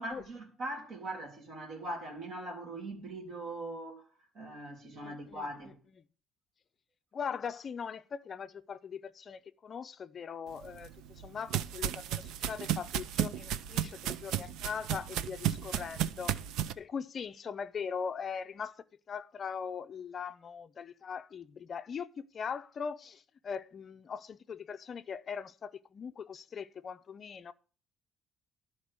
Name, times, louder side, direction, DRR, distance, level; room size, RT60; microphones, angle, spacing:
voice 1, 0.0-4.0 4.3-5.8, right 1 dB, 45° right, 3.4 m, -41 dB
voice 2, 4.9-5.5 7.1-16.4 16.8-27.5, left 6 dB, 30° left, 0.5 m, -41 dB
sound 1, 10.6-16.7, right 10 dB, 75° right, 0.6 m, -34 dB
12.0 x 4.4 x 8.3 m
cardioid pair, 165°, 0 cm